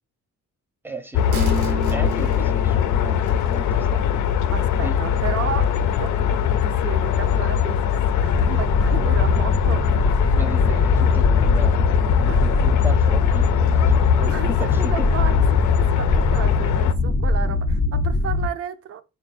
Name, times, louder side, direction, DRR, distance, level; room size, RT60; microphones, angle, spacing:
voice 1, 0.8-4.3 4.8-5.0 10.3-15.1, right 1 dB, 5° right, 0.6 m, -36 dB
sound 1, 1.1-16.9, left 8 dB, 70° left, 0.5 m, -21 dB
sound 2, 1.3-8.3 8.7-8.8, right 2 dB, 80° right, 0.8 m, -35 dB
voice 2, 4.5-7.9 8.2-11.2 12.2-12.4 14.2-19.0, right 8 dB, 50° right, 0.5 m, -33 dB
sound 3, 8.3-18.5, left 4 dB, 30° left, 0.7 m, -21 dB
3.6 x 2.3 x 4.1 m
cardioid pair, 90°, 30 cm